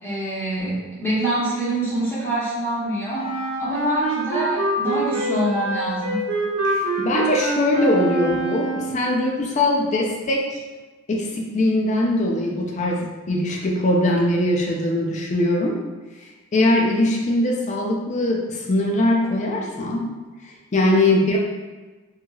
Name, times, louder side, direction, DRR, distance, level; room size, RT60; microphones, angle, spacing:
voice 1, 0.0-3.3 3.6-6.2, right 1 dB, 10° left, -9 dB, 0.7 m, -25 dB
Wind instrument woodwind instrument, 3.1-9.1, right 2 dB, 80° right, 1.0 m, -26 dB
voice 2, 6.6-10.6 11.1-15.8 16.5-20.1 20.7-21.4, left 1 dB, 35° left, -1 dB, 0.4 m, -21 dB
3.0 x 2.7 x 2.3 m, 1.2 s
head